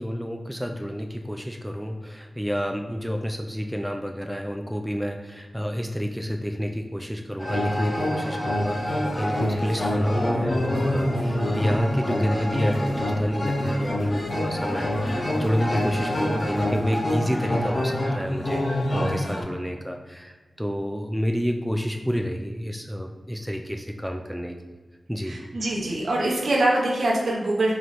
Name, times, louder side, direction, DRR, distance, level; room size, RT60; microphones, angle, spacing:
voice 1, 0.0-18.6 18.9-24.6 25.1-25.4, equal, 5° right, 3 dB, 0.3 m, -29 dB
sound 1, 7.4-19.4, left 1 dB, 55° left, 1.1 m, -26 dB
sound 2, 8.7-17.2, equal, 80° left, 1.1 m, -39 dB
voice 2, 25.3-27.7, right 1 dB, 75° right, -3 dB, 0.8 m, -24 dB
3.1 x 3.0 x 4.1 m, 1.4 s
cardioid pair, 45°, 0 cm